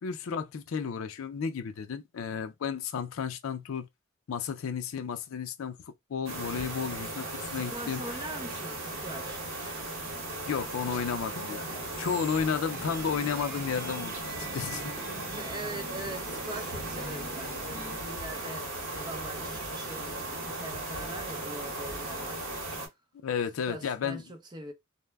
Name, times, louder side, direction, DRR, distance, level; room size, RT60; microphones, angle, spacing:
voice 1, 0.0-3.9 4.3-8.0 10.5-11.7 12.0-14.9 23.2-24.2, left 6 dB, 90° left, 0.4 m, -33 dB
sound 1, 6.3-22.9, right 2 dB, 75° right, 1.0 m, -37 dB
voice 2, 7.3-9.4 15.3-22.5 23.7-24.7, right 2 dB, 20° right, 0.5 m, -42 dB
sound 2, 11.0-18.2, left 2 dB, 45° left, 0.6 m, -50 dB
sound 3, 12.7-18.0, right 2 dB, 45° right, 0.8 m, -43 dB
2.1 x 2.0 x 3.3 m
head